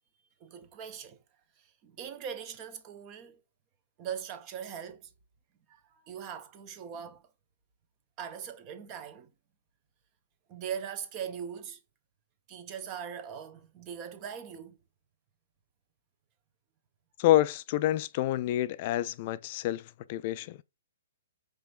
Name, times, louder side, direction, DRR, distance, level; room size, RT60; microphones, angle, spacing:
voice 1, 0.4-1.2 1.6-3.4 4.0-5.1 5.7-7.2 8.2-9.3 10.5-11.8 12.5-14.8, right 8 dB, 35° right, 1.0 m, -41 dB
voice 2, 17.2-20.6, left 14 dB, 45° left, 0.4 m, -28 dB
5.0 x 3.4 x 2.5 m
hypercardioid pair, 135°, 0 cm